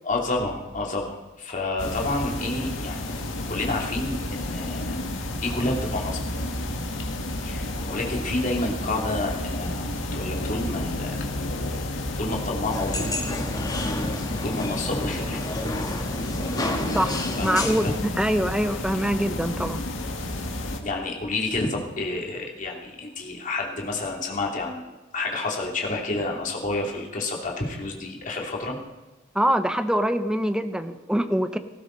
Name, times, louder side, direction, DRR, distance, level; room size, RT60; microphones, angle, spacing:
voice 1, 0.0-5.0 5.3-6.2 7.4-9.8 10.1-11.3 12.2-13.1 14.4-15.4 17.4-17.9 20.8-28.8, left 2 dB, 40° left, -1 dB, 2.8 m, -29 dB
sound 1, 1.8-20.8, left 1 dB, 85° left, 1.9 m, -31 dB
sound 2, 12.7-17.9, left 1 dB, 20° left, 1.6 m, -30 dB
voice 2, 16.9-17.9 18.2-19.8 29.3-31.6, equal, 5° right, 8 dB, 0.8 m, -24 dB
18.0 x 15.5 x 4.0 m, 1.1 s
head